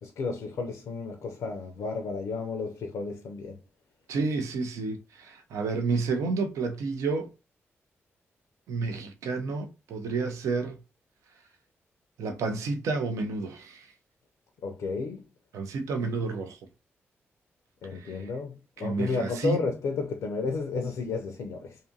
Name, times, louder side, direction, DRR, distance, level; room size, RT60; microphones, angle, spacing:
voice 1, 0.0-3.6 14.6-15.3 17.8-21.8, left 4 dB, 85° left, 0.4 m, -32 dB
voice 2, 4.1-7.3 8.7-10.8 12.2-13.9 15.5-16.6 17.9-18.2 18.8-19.6, right 4 dB, 85° right, 0.4 m, -30 dB
2.5 x 2.4 x 2.6 m
supercardioid pair, 55°, 5 cm